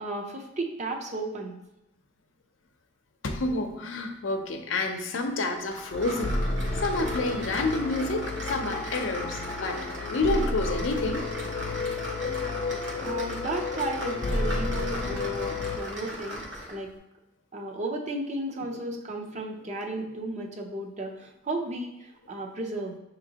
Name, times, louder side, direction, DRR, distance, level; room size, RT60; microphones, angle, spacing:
voice 1, 0.0-1.6 13.0-16.9 17.5-23.0, right 1 dB, 40° right, 2 dB, 0.6 m, -34 dB
voice 2, 3.2-6.4 6.8-9.8 10.1-11.3, left 2 dB, 90° left, 4 dB, 0.6 m, -29 dB
sound 1, 5.7-16.8, equal, 75° right, 1.0 m, -38 dB
sound 2, 5.9-15.8, left 3 dB, 35° left, 0.3 m, -32 dB
6.0 x 2.8 x 2.8 m, 0.88 s
head